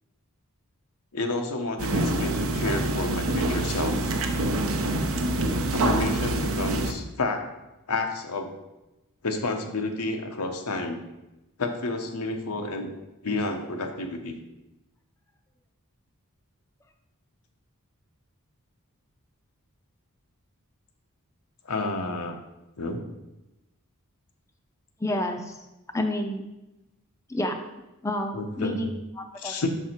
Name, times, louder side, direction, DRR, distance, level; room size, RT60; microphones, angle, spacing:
voice 1, 1.1-4.2 5.7-7.5 7.9-8.6 9.2-11.0 11.6-12.9 13.2-14.3 21.7-22.4 22.8-23.0 28.3-28.8 29.4-29.7, left 2 dB, 90° left, 4 dB, 0.9 m, -30 dB
sound 1, 1.8-6.9, right 2 dB, 70° right, 0.7 m, -26 dB
voice 2, 25.0-25.6 25.9-26.4 27.3-27.6 28.0-29.7, left 1 dB, 15° left, 4 dB, 0.5 m, -29 dB
6.6 x 4.7 x 4.4 m, 0.98 s
head